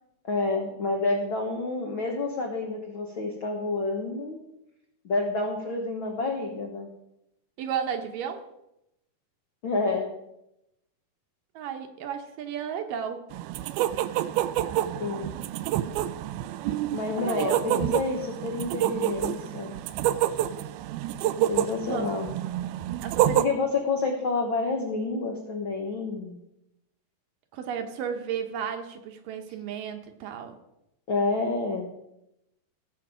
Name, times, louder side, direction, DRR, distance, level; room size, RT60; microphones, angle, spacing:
voice 1, 0.3-4.4 5.0-6.9 9.6-10.1 15.0-15.3 16.9-19.7 21.5-22.3 23.3-26.4 31.1-31.9, left 3 dB, 70° left, 1 dB, 1.1 m, -29 dB
voice 2, 7.6-8.5 11.6-13.2 17.2-17.6 21.9-22.2 23.0-23.4 27.5-30.6, right 8 dB, 75° right, 6 dB, 2.4 m, -33 dB
sound 1, 13.3-23.5, right 12 dB, 90° right, 2.5 m, -28 dB
16.5 x 7.1 x 4.9 m, 0.85 s
omnidirectional pair, 4.3 m